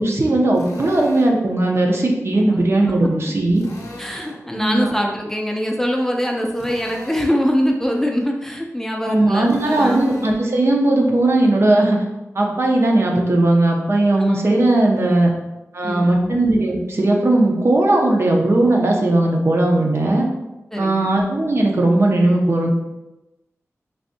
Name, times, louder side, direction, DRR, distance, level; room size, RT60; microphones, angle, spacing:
voice 1, 0.0-3.6 4.6-4.9 9.0-12.0 12.3-15.3 15.7-20.3 20.8-22.7, right 2 dB, 50° right, 0 dB, 0.6 m, -17 dB
Drill, 0.5-1.4 3.5-4.4 6.5-7.4 9.4-10.4, left 1 dB, 70° left, 0.6 m, -38 dB
voice 2, 4.0-10.2 14.3-14.4 15.8-16.4 20.7-21.1, equal, 5° left, 1 dB, 0.4 m, -23 dB
3.3 x 2.6 x 2.6 m, 0.99 s
wide cardioid pair, 75°, 5 cm